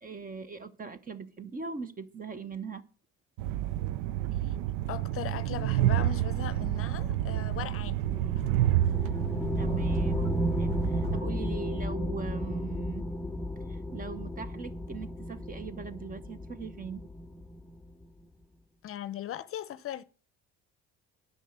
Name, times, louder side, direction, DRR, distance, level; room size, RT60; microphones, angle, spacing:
voice 1, 0.0-2.8 9.6-13.1 13.7-17.0, right 5 dB, 30° right, 1.1 m, -40 dB
Train, 3.4-11.2, right 13 dB, 90° right, 0.5 m, -29 dB
voice 2, 4.9-8.1 8.4-8.5 11.1-11.3 18.8-20.0, left 11 dB, 50° left, 0.7 m, -38 dB
sound 1, 8.0-18.1, left 1 dB, 5° left, 0.5 m, -34 dB
10.0 x 6.2 x 8.1 m
cardioid pair, 105°, 29 cm